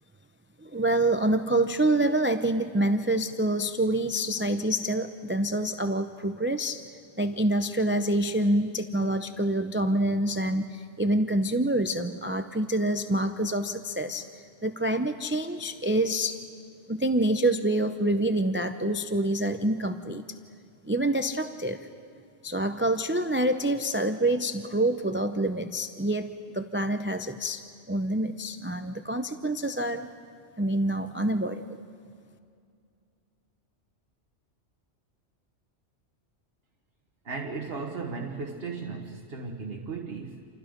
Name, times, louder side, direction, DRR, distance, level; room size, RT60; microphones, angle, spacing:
voice 1, 0.6-6.8 7.2-14.3 14.6-16.4 16.9-20.2 20.8-21.8 22.4-27.6 27.9-30.1 30.6-31.6, right 1 dB, 15° right, 8 dB, 0.5 m, -26 dB
voice 2, 37.2-40.5, right 4 dB, 55° right, 2 dB, 1.5 m, -36 dB
29.0 x 28.0 x 5.2 m, 2.4 s
omnidirectional pair, 1.2 m